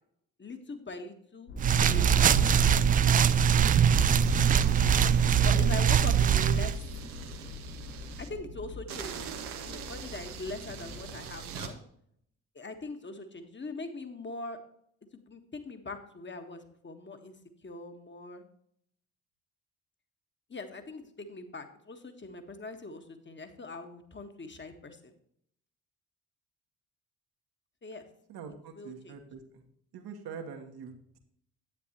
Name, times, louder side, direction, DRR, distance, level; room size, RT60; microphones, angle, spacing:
voice 1, 0.4-1.5 1.9-2.7 3.2-4.3 5.4-6.9 8.2-9.2 9.6-11.8 12.5-14.6 15.1-17.3 17.6-18.4 20.5-25.1 27.8-28.1 28.7-29.1, left 3 dB, 25° left, 7 dB, 1.6 m, -42 dB
sound 1, 1.5-11.2, left 4 dB, 85° left, 3.3 m, -38 dB
sound 2, 1.6-6.7, right 9 dB, 20° right, 0.3 m, -22 dB
sound 3, 4.2-8.3 8.9-11.7, right 8 dB, 80° right, 1.1 m, -43 dB
voice 2, 28.3-29.6 29.9-31.2, right 6 dB, 55° right, 5 dB, 1.4 m, -44 dB
9.8 x 9.3 x 3.0 m, 0.68 s
figure-of-eight pair, 40°, 44 cm